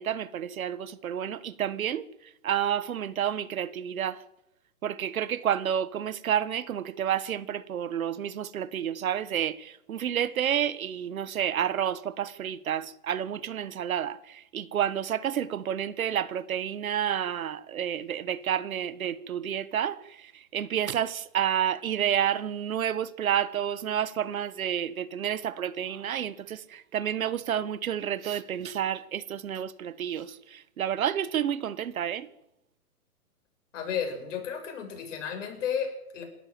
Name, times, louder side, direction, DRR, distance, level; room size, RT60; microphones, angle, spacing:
voice 1, 0.0-2.1 2.4-4.2 4.8-32.3, right 9 dB, 60° right, 1.5 m, -30 dB
voice 2, 33.7-36.2, left 7 dB, 50° left, 6.9 m, -33 dB
27.5 x 13.0 x 7.8 m
hypercardioid pair, 135°, 47 cm